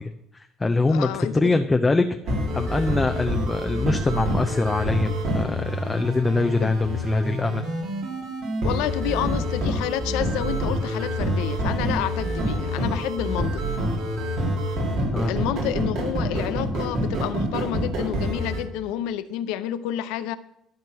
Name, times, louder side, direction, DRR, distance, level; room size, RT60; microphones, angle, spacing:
voice 1, 0.0-7.6 15.1-15.3, left 3 dB, 20° left, 7 dB, 0.7 m, -24 dB
voice 2, 0.9-1.5 6.6-6.8 8.6-13.6 15.3-20.4, left 11 dB, 85° left, 13 dB, 0.6 m, -29 dB
sound 1, 2.3-18.6, equal, 70° right, 2.5 m, -27 dB
12.5 x 4.6 x 6.0 m, 0.78 s
supercardioid pair, 75°, 0 cm